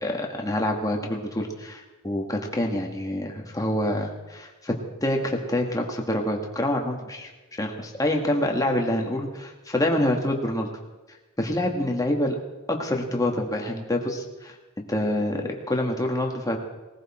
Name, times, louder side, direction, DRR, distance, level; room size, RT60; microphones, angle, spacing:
voice 1, 0.0-4.7 5.0-10.7 11.4-12.4 12.7-14.6 14.9-16.6, left 1 dB, 15° left, 2 dB, 1.9 m, -26 dB
20.0 x 15.0 x 4.4 m, 1.2 s
head